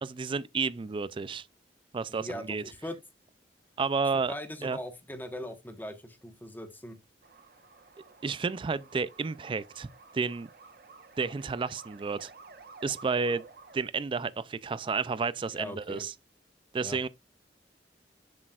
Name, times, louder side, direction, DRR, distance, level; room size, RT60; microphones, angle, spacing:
voice 1, 0.0-1.5 1.9-2.6 3.8-4.3 4.6-4.8 8.2-9.9 10.1-10.5 11.2-12.3 12.8-13.4 13.7-16.1 16.7-17.1, right 4 dB, 30° right, 0.3 m, -31 dB
voice 2, 2.1-3.0 4.1-7.0 15.5-16.1 16.8-17.0, left 1 dB, 10° left, 1.2 m, -40 dB
sound 1, 7.2-13.8, right 4 dB, 55° right, 1.1 m, -52 dB
7.5 x 6.1 x 2.4 m
head